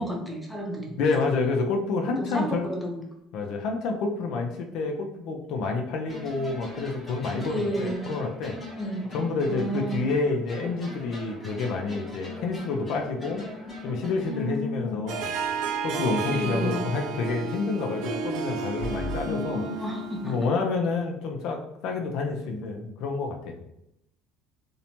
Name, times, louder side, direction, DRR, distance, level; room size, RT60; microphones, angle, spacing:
voice 1, 0.0-0.9 2.2-3.0 7.4-8.1 8.8-9.2 9.5-10.1 14.3-15.1 16.3-16.8 19.2-20.4, equal, ahead, 0 dB, 0.6 m, -31 dB
voice 2, 1.0-2.7 3.3-8.6 9.1-15.3 15.8-19.6 20.2-23.5, left 4 dB, 70° left, 3 dB, 0.4 m, -28 dB
sound 1, 6.1-14.9 18.8-19.2, left 1 dB, 20° left, 1.0 m, -40 dB
Harp, 15.1-20.5, right 5 dB, 80° right, 0.4 m, -32 dB
2.6 x 2.1 x 2.9 m, 0.80 s
cardioid pair, 120°, 0 cm